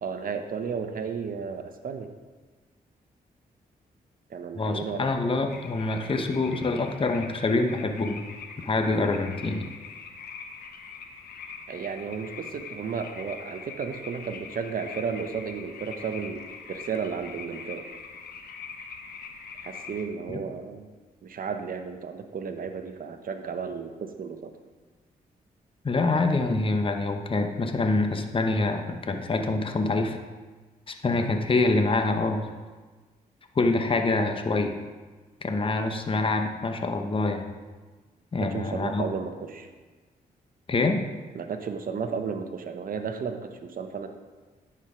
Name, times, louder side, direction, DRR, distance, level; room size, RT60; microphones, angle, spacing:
voice 1, 0.0-2.1 4.3-5.2 11.7-16.4 16.7-17.9 19.6-20.9 21.2-24.5 38.4-39.7 41.3-44.1, right 6 dB, 60° right, 7 dB, 0.8 m, -33 dB
voice 2, 4.6-8.3 8.6-9.6 20.3-20.4 25.8-30.2 30.9-32.5 33.5-34.7 35.4-37.4 38.3-39.0 40.7-41.0, left 3 dB, 35° left, 5 dB, 0.9 m, -25 dB
sound 1, 5.5-20.0, left 5 dB, 75° left, 0.8 m, -43 dB
10.5 x 4.6 x 5.0 m, 1.3 s
cardioid pair, 60°, 16 cm